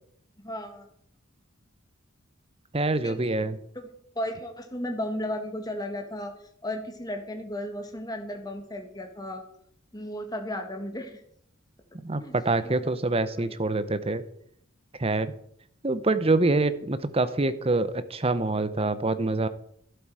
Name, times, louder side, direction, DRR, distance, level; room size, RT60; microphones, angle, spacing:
voice 1, 0.4-0.9 3.0-3.4 3.8-3.9 4.2-6.3 6.6-9.4 9.9-11.2 12.1-12.3 12.6-12.8 13.4-13.5, left 1 dB, 20° left, 5 dB, 1.8 m, -34 dB
voice 2, 2.7-3.6 12.0-14.2 15.0-15.3 15.8-19.5, right 2 dB, 30° right, 13 dB, 0.8 m, -25 dB
12.5 x 11.0 x 4.8 m, 0.67 s
head